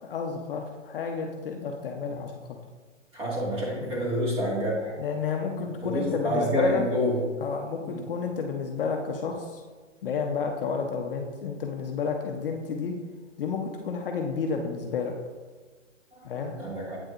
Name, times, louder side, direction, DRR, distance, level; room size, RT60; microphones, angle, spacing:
voice 1, 0.0-2.6 3.8-4.0 5.0-6.8 7.4-9.6 10.0-12.9 13.4-15.1 16.2-16.5, left 5 dB, 45° left, 3 dB, 0.7 m, -31 dB
voice 2, 3.1-4.9 5.8-7.1 7.8-8.0 16.5-17.0, equal, 15° right, -4 dB, 1.8 m, -27 dB
8.3 x 6.1 x 2.5 m, 1.4 s
hypercardioid pair, 145°, 38 cm